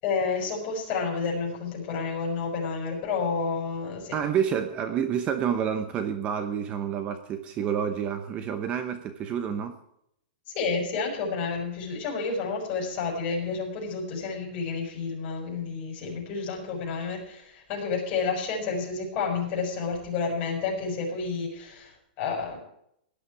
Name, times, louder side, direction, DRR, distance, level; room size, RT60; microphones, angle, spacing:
voice 1, 0.0-4.2 10.5-22.6, left 5 dB, 30° left, -1 dB, 6.2 m, -30 dB
voice 2, 4.1-9.8, right 8 dB, 20° right, 9 dB, 1.0 m, -29 dB
17.5 x 12.0 x 4.8 m, 0.74 s
supercardioid pair, 165°, 5 cm